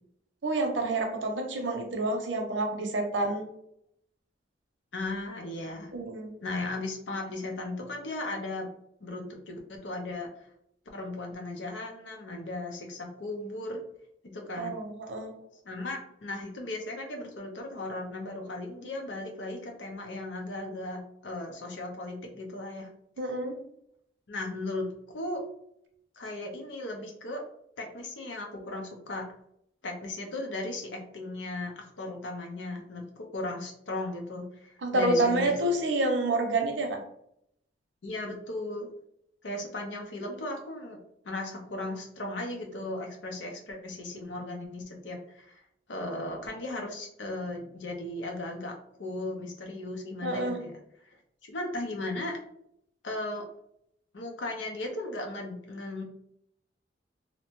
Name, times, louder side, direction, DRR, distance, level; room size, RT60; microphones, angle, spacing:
voice 1, 0.4-3.5 5.9-6.3 14.6-15.3 23.2-23.6 34.8-37.0 50.2-50.6, right 2 dB, 90° right, 3 dB, 0.6 m, -28 dB
voice 2, 4.9-5.9 6.4-8.7 9.0-10.3 10.9-13.8 14.2-14.8 15.6-22.9 24.3-25.4 26.2-27.4 27.8-29.2 29.8-35.5 38.0-38.9 39.4-41.0 41.2-45.6 45.9-50.8 51.0-52.4 53.0-53.4 54.1-56.0, left 2 dB, 85° left, 2 dB, 0.6 m, -36 dB
2.7 x 2.1 x 3.0 m, 0.74 s
head